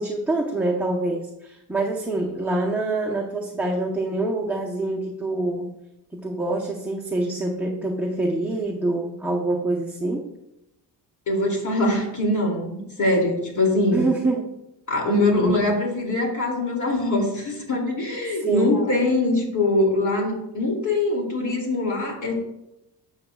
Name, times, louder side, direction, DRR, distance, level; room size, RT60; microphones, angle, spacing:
voice 1, 0.0-5.7 6.1-10.3 13.9-14.5 15.1-15.6 18.4-18.8, right 2 dB, 5° right, -3 dB, 0.8 m, -25 dB
voice 2, 11.3-14.1 14.9-22.3, left 2 dB, 45° left, 0 dB, 2.7 m, -23 dB
12.0 x 7.3 x 2.4 m, 0.87 s
cardioid pair, 140°, 42 cm